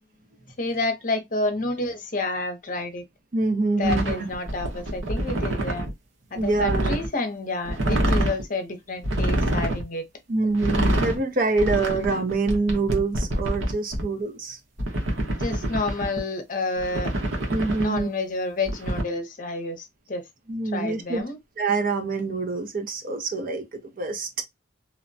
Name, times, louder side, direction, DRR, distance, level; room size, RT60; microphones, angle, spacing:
voice 1, 0.6-3.0 3.8-5.9 6.3-10.0 15.3-17.1 17.8-20.2 20.7-21.4, left 2 dB, 45° left, 0.7 m, -29 dB
voice 2, 3.3-4.3 6.3-6.9 10.3-14.6 17.5-18.1 20.5-21.2 21.6-23.6 24.0-24.4, right 3 dB, 45° right, 0.6 m, -25 dB
sound 1, 3.8-5.9 6.4-7.1 7.6-8.4 9.0-9.8 10.5-11.2 11.6-14.0 14.8-16.2 16.8-18.0 18.7-19.0, right 1 dB, 80° right, 1.0 m, -26 dB
2.9 x 2.1 x 2.5 m
head